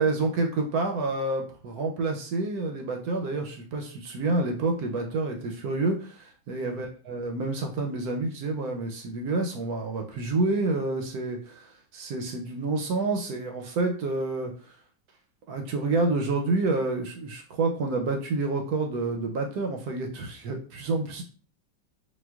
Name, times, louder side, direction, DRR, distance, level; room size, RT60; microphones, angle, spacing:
voice 1, 0.0-14.8 15.5-21.2, right 3 dB, 70° right, 2 dB, 0.9 m, -28 dB
4.2 x 2.2 x 2.3 m, 0.40 s
omnidirectional pair, 2.0 m